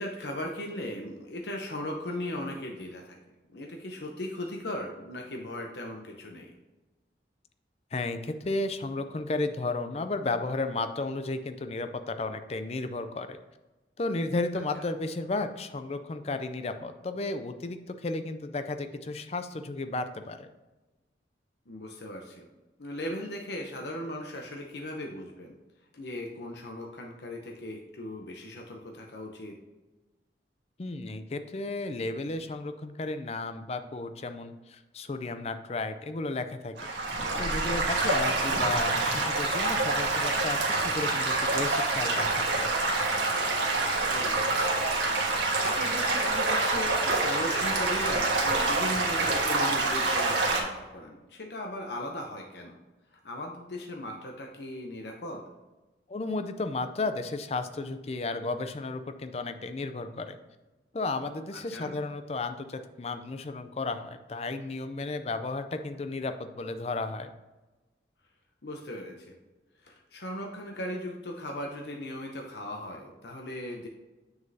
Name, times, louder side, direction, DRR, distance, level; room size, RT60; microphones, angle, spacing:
voice 1, 0.0-3.2 3.5-6.5 14.7-14.8 21.7-22.5 22.8-25.5 25.9-29.6 38.2-38.5 44.1-44.5 45.2-52.8 53.1-55.5 61.5-61.9 68.6-69.4 69.8-73.9, left 1 dB, 70° left, 2 dB, 0.8 m, -38 dB
voice 2, 7.9-13.4 14.0-20.5 30.8-36.9 37.4-42.7 56.1-60.4 60.9-67.3, left 3 dB, 35° left, 9 dB, 0.4 m, -33 dB
Stream / Gurgling / Trickle dribble, 36.8-50.6, right 2 dB, 85° right, 1.4 m, -27 dB
7.3 x 6.3 x 2.8 m, 1.1 s
head